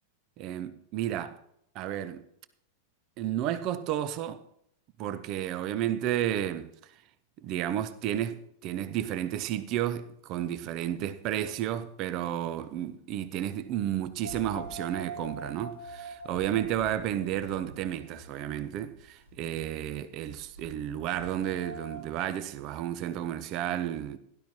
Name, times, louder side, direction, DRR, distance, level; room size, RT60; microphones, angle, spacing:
voice 1, 0.4-1.4 1.7-2.2 3.2-4.4 5.0-6.9 7.4-24.2, right 11 dB, 40° right, 0.7 m, -32 dB
sound 1, 14.2-22.0, right 2 dB, 70° right, 1.8 m, -44 dB
17.0 x 11.5 x 2.9 m
figure-of-eight pair, 90°, 0 cm